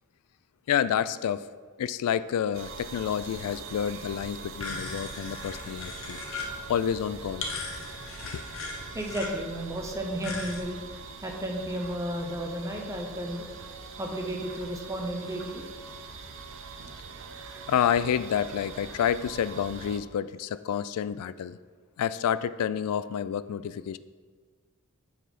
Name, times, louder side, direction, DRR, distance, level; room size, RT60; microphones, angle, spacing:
voice 1, 0.7-1.5 1.8-6.2 6.7-7.5 8.2-8.4 17.7-21.6 22.0-24.0, left 8 dB, 90° left, 17 dB, 0.3 m, -29 dB
sound 1, 2.5-20.0, right 5 dB, 60° right, 0.5 m, -43 dB
sound 2, 4.6-10.6, left 3 dB, 65° left, 1.0 m, -39 dB
voice 2, 8.9-10.8 11.2-13.4 14.0-15.6, right 1 dB, 15° right, 1 dB, 0.6 m, -33 dB
7.5 x 4.1 x 5.2 m, 1.5 s
head